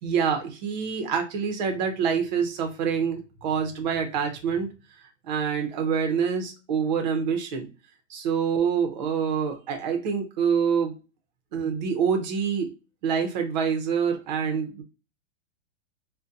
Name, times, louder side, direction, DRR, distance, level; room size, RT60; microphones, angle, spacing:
voice 1, 0.0-4.7 5.3-7.7 8.1-11.0 11.5-12.7 13.0-14.8, right 6 dB, 35° right, 5 dB, 0.7 m, -26 dB
4.0 x 2.2 x 2.5 m, 0.30 s
supercardioid pair, 170°, 38 cm